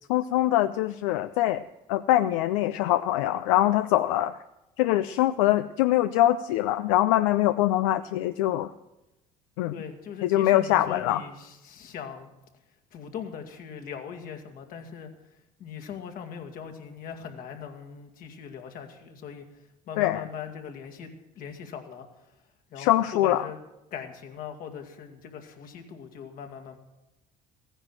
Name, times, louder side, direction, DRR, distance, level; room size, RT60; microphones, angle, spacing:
voice 1, 0.1-1.6 1.9-4.4 4.8-8.7 9.6-9.7 10.2-11.2 20.0-20.2 22.8-23.5, left 14 dB, 90° left, 11 dB, 0.4 m, -23 dB
voice 2, 9.7-12.3 12.9-15.1 15.6-19.5 19.9-21.1 21.3-22.3 22.7-23.6 23.9-26.8, left 7 dB, 60° left, 5 dB, 2.1 m, -40 dB
15.0 x 10.0 x 7.4 m, 0.96 s
supercardioid pair, 85°, 16 cm